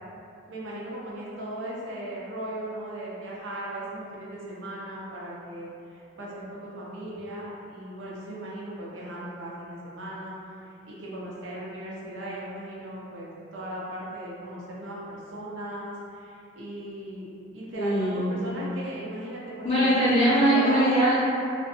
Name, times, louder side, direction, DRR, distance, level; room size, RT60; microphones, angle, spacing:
voice 1, 0.4-10.4 10.8-17.3 17.5-19.9 20.4-20.9, right 1 dB, 65° right, -6 dB, 0.5 m, -37 dB
voice 2, 17.7-18.3 19.6-21.2, right 1 dB, 30° left, -11 dB, 0.8 m, -21 dB
2.6 x 2.1 x 2.5 m, 2.5 s
head